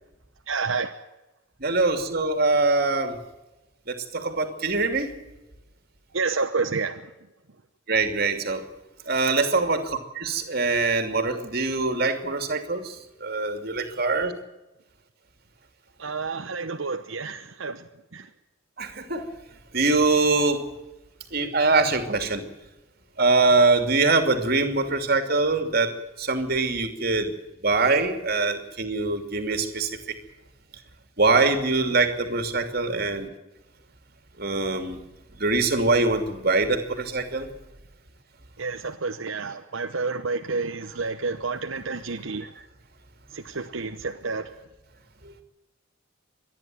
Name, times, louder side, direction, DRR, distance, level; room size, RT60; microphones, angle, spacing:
voice 1, 0.5-0.9 6.1-7.1 16.0-18.3 38.6-42.5 43.3-44.5, right 4 dB, 75° right, 1.0 m, -30 dB
voice 2, 1.6-3.2 3.9-5.1 7.9-8.6 9.1-12.8 13.2-14.3 18.8-19.2 19.7-20.6 21.3-22.4 23.2-25.9 26.2-27.3 27.6-29.9 31.2-33.3 34.4-35.0 35.4-37.5, right 3 dB, 50° right, 2.8 m, -23 dB
26.0 x 10.5 x 9.4 m
head